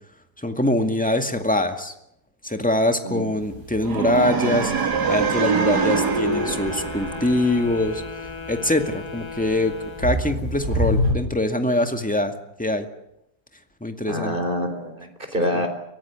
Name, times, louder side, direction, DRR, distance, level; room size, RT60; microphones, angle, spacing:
voice 1, 0.4-1.9 2.4-8.0 8.5-12.3 12.6-12.9 13.8-14.4 15.5-15.6, left 1 dB, 5° left, 6 dB, 2.0 m, -23 dB
sound 1, 3.4-11.1, equal, 60° right, 6.1 m, -30 dB
sound 2, 3.8-7.9, right 5 dB, 80° right, 2.7 m, -24 dB
Wind instrument woodwind instrument, 5.7-10.3, left 5 dB, 80° left, 2.4 m, -37 dB
voice 2, 14.1-15.7, equal, 30° right, 6 dB, 4.3 m, -26 dB
23.5 x 18.0 x 9.6 m, 0.79 s
omnidirectional pair, 1.7 m